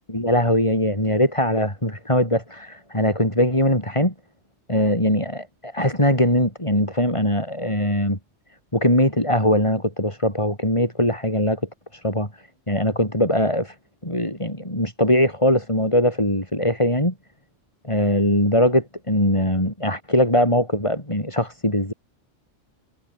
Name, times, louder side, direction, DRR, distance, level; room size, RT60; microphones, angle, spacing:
voice 1, 0.1-4.1 4.7-8.2 8.7-11.6 11.9-12.3 12.7-13.7 14.0-17.1 17.8-21.9, left 1 dB, 25° left, 8.1 m, -21 dB
omnidirectional pair, 1.2 m